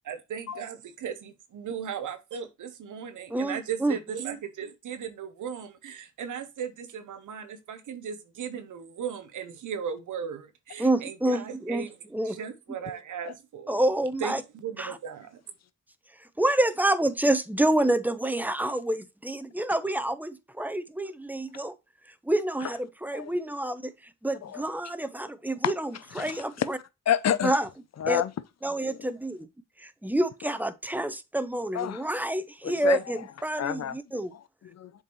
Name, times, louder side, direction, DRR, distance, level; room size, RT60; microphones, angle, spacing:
voice 1, 0.0-11.9 12.2-13.8 14.2-15.4, right 7 dB, 90° right, 0.8 m, -37 dB
voice 2, 3.3-4.0 10.8-12.4 13.7-14.4 14.8-15.0 16.2-21.7 22.2-25.9 26.2-26.8 27.4-27.7 28.1-28.2 28.6-29.5 29.8-34.3, right 1 dB, 5° right, 0.8 m, -28 dB
voice 3, 26.2-26.7 27.1-27.6 28.0-28.3 28.8-29.0 31.7-32.1 32.6-33.0 33.6-34.0 34.3-35.0, left 9 dB, 60° left, 0.6 m, -29 dB
7.1 x 4.6 x 3.1 m
cardioid pair, 40°, 30 cm